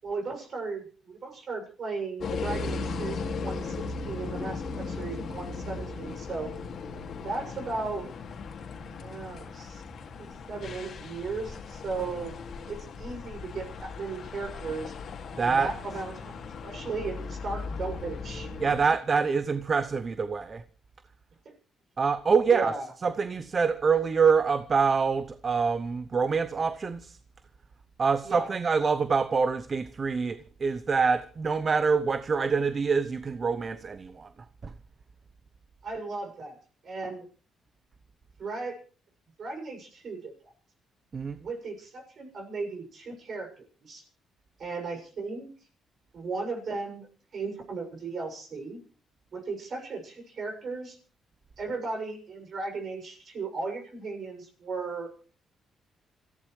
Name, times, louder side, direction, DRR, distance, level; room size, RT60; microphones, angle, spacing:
voice 1, 0.0-6.5 7.2-8.0 9.0-9.8 10.5-12.4 12.7-14.9 15.4-18.5 21.5-21.6 22.5-22.9 28.2-28.5 35.8-36.6 36.8-37.3 38.4-38.8 39.4-40.5 41.4-44.0 44.6-45.5 46.1-48.8 49.3-51.0 51.6-55.1, right 3 dB, 55° right, 6.9 m, -36 dB
sound 1, 2.2-18.8, left 4 dB, 60° left, 2.3 m, -37 dB
voice 2, 15.4-15.7 18.6-20.6 22.0-27.2 28.0-34.3 34.6-34.7 41.1-41.4, right 5 dB, 40° right, 0.8 m, -26 dB
28.0 x 15.0 x 3.3 m
cardioid pair, 90°, 0 cm